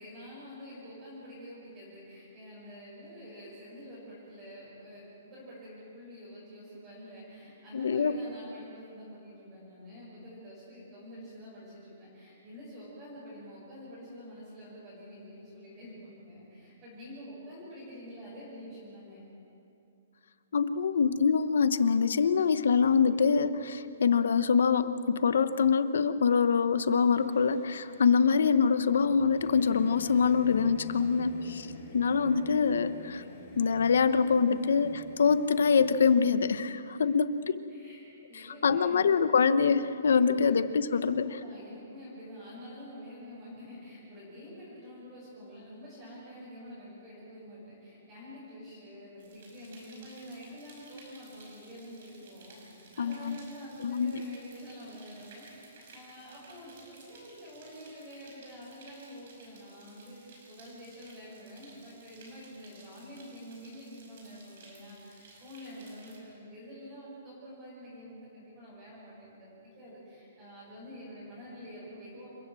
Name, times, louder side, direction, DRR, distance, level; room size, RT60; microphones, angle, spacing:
voice 1, 0.0-19.3 31.2-31.6 37.0-37.1 37.7-38.0 38.3-39.1 40.2-40.6 40.9-72.4, equal, 15° right, -9 dB, 6.2 m, -47 dB
voice 2, 7.7-8.1 20.5-31.7 31.9-33.2 33.6-37.6 38.3-41.3 53.0-53.4 53.8-54.2, left 6 dB, 75° left, 12 dB, 1.0 m, -25 dB
Singing / Musical instrument, 27.0-36.6, left 3 dB, 25° left, 7.0 m, -48 dB
sound 1, 49.2-66.2, right 3 dB, 45° right, 5.5 m, -56 dB
28.0 x 15.0 x 7.7 m, 2.6 s
hypercardioid pair, 180°, 0 cm